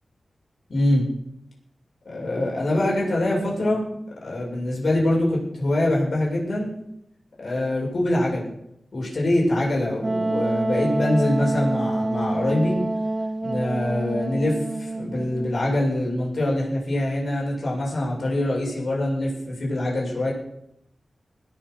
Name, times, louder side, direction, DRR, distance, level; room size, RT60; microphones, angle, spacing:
voice 1, 0.7-1.0 2.1-3.8 4.2-6.7 7.4-8.5 8.9-12.8 13.4-20.3, left 1 dB, 60° left, -4 dB, 7.4 m, -24 dB
Wind instrument woodwind instrument, 10.0-15.6, right 2 dB, 25° right, 0.7 m, -27 dB
20.0 x 7.4 x 6.8 m, 0.78 s
wide cardioid pair, 90°, 0 cm